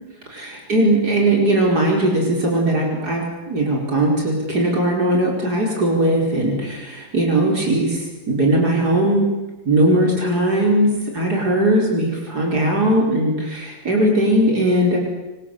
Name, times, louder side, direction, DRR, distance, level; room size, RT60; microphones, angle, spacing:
voice 1, 0.3-9.3 9.7-15.0, right 1 dB, 80° right, -1 dB, 5.5 m, -19 dB
27.5 x 25.0 x 8.5 m, 1.1 s
omnidirectional pair, 1.7 m